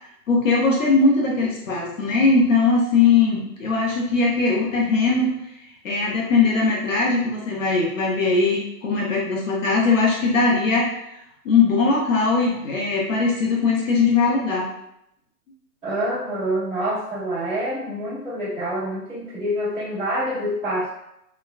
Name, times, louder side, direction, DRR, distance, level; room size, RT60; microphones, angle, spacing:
voice 1, 0.3-5.3 5.8-10.9 11.4-14.7, left 4 dB, 55° left, -3 dB, 0.8 m, -20 dB
voice 2, 15.8-20.9, equal, 5° right, -19 dB, 1.2 m, -26 dB
3.2 x 2.2 x 2.3 m, 0.80 s
hypercardioid pair, 165°, 48 cm